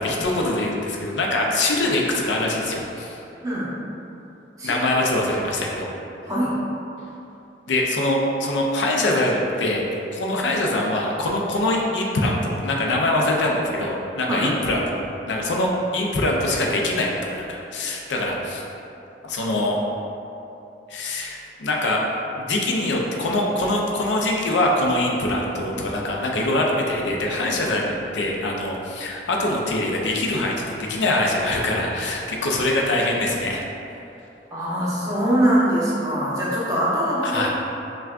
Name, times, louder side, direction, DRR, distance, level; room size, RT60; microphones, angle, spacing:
voice 1, 0.0-3.2 4.6-5.9 7.7-9.9 10.1-18.6 19.2-19.8 20.9-22.0 22.4-33.6 37.2-37.5, left 1 dB, 85° left, -1 dB, 0.5 m, -23 dB
voice 2, 6.2-6.6 14.3-14.5 34.5-37.5, right 1 dB, 20° right, -9 dB, 0.9 m, -22 dB
5.7 x 2.4 x 2.4 m, 2.8 s
head